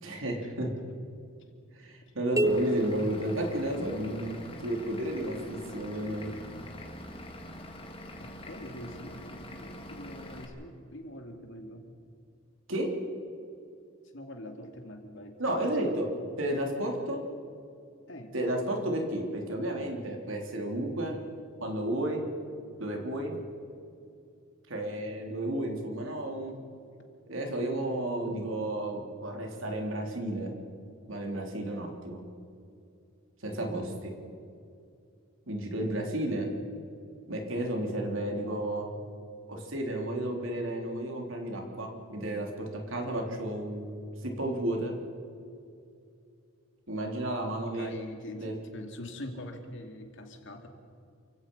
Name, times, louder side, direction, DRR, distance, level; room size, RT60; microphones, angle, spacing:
voice 1, 0.0-0.7 1.8-6.3 12.7-12.9 15.4-16.1 16.4-17.2 18.3-21.2 21.6-22.2 22.8-23.3 24.7-26.5 27.3-30.5 31.1-32.2 33.4-34.1 35.5-36.5 37.3-38.9 39.5-44.9 46.9-47.9 48.4-48.5, right 1 dB, 65° right, 1 dB, 3.6 m, -32 dB
sound 1, 2.4-4.3, right 1 dB, 15° right, 0.4 m, -30 dB
Vehicle / Engine, 2.5-10.5, left 1 dB, 25° left, 2.4 m, -44 dB
voice 2, 8.2-11.9 14.1-15.9 18.1-18.3 35.9-36.1 47.7-50.7, left 1 dB, 60° left, 4 dB, 2.6 m, -44 dB
28.5 x 16.5 x 5.6 m, 2.5 s
head